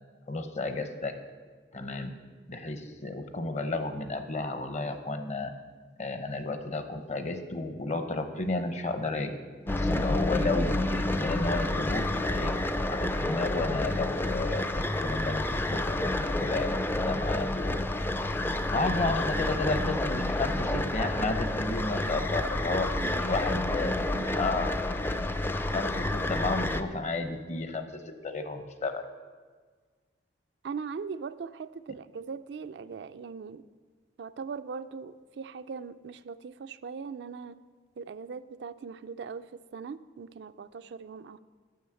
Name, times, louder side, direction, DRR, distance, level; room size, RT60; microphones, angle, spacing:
voice 1, 0.3-1.1 1.7-2.1 2.5-5.5 6.0-9.3 9.6-12.5 12.9-17.8 18.7-22.9 23.3-23.9 24.4-24.8 25.6-29.0, left 3 dB, 40° left, 8 dB, 0.7 m, -32 dB
sound 1, 9.7-26.8, left 1 dB, 10° left, 0.3 m, -29 dB
voice 2, 22.6-23.4 23.7-24.5 30.6-33.6 34.2-37.6 38.0-41.4, right 5 dB, 65° right, 12 dB, 0.4 m, -40 dB
9.4 x 6.3 x 7.6 m, 1.5 s
head